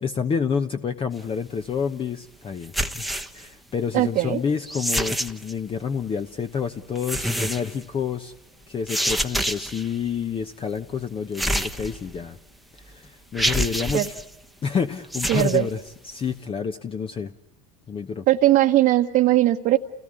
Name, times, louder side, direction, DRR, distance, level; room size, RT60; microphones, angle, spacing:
voice 1, 0.0-8.3 8.7-12.4 12.8-14.2 14.6-17.3 17.9-18.2, left 6 dB, 30° left, 8 dB, 1.0 m, -28 dB
sound 1, 2.6-3.5 4.6-5.5 7.0-7.8 8.9-9.9 11.4-12.3 12.8-12.9 13.4-14.2 15.0-15.6, right 1 dB, ahead, 1.1 m, -27 dB
voice 2, 3.9-4.4 13.9-14.1 15.3-15.7 18.3-19.8, right 15 dB, 55° right, 1 dB, 1.3 m, -19 dB
29.0 x 18.0 x 9.7 m, 0.96 s
supercardioid pair, 105°, 19 cm